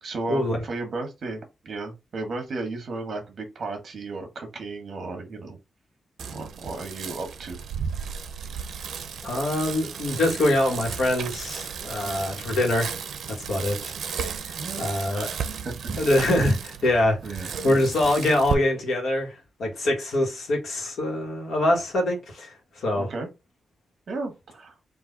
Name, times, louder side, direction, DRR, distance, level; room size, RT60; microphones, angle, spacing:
voice 1, 0.0-5.6 6.3-7.6 12.0-12.3 14.6-14.8 15.1-15.4 15.6-16.0 17.2-17.5 22.9-23.3 24.1-24.7, right 3 dB, 50° right, 1.3 m, -34 dB
Bicycle, 6.2-18.5, right 7 dB, 80° right, 0.6 m, -34 dB
voice 2, 9.2-13.0 13.3-14.3 14.8-15.3 16.0-19.3 19.6-23.1, left 1 dB, 70° left, 1.4 m, -24 dB
3.9 x 2.6 x 3.8 m
wide cardioid pair, 170°, 0 cm